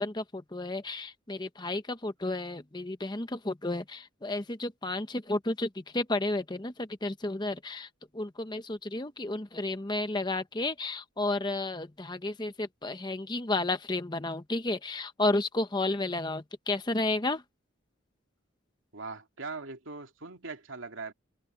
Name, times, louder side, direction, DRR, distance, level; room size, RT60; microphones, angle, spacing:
voice 1, 0.0-17.4, left 2 dB, 20° left, 0.9 m, -32 dB
voice 2, 18.9-21.1, right 4 dB, 80° right, 2.7 m, -40 dB
head